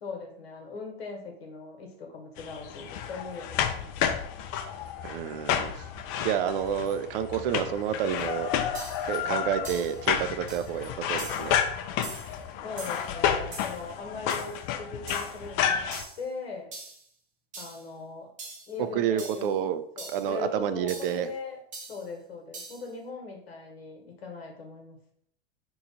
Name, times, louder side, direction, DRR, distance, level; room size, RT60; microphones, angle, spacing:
voice 1, 0.0-3.9 12.6-15.8 16.2-16.7 17.6-18.3 18.7-21.6 21.9-25.0, left 4 dB, 85° left, 2 dB, 1.1 m, -40 dB
sound 1, 2.4-16.0, left 8 dB, 45° left, 0.4 m, -31 dB
voice 2, 5.0-5.8 6.2-8.5 9.0-11.6 18.9-19.8 20.1-21.3, right 9 dB, 65° right, 11 dB, 0.4 m, -29 dB
sound 2, 8.2-8.3 8.7-9.1 9.6-10.0 10.5-10.7 11.2-11.5 12.0-12.4 12.8-13.1 13.5-13.8 14.3-14.5 15.1-15.4 15.9-16.2 16.7-17.0 17.5-17.9 18.4-18.7 19.2-19.5 20.0-20.3 20.9-21.2 21.7-22.1 22.5-22.9, right 3 dB, 25° right, 0.8 m, -42 dB
3.0 x 2.3 x 3.9 m, 0.67 s
hypercardioid pair, 110°, 30 cm